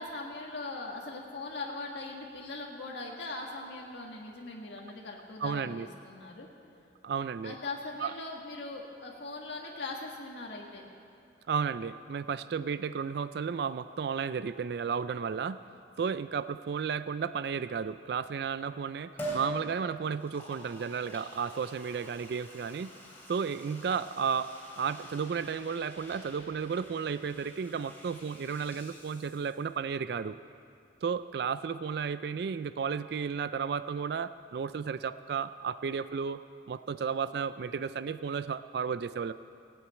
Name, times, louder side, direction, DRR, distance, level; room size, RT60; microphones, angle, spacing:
voice 1, 0.0-6.5 7.4-10.8, left 2 dB, 80° left, -1 dB, 1.6 m, -40 dB
voice 2, 5.4-5.9 7.0-7.6 8.0-8.1 11.5-15.6 16.0-22.9 23.3-24.5 24.8-30.4 31.0-36.4 36.7-39.3, right 6 dB, 60° right, 13 dB, 0.3 m, -33 dB
Liquid, 19.2-19.5 20.1-29.7 30.1-30.2, right 1 dB, 10° left, 3.0 m, -46 dB
17.0 x 7.9 x 8.9 m, 2.5 s
head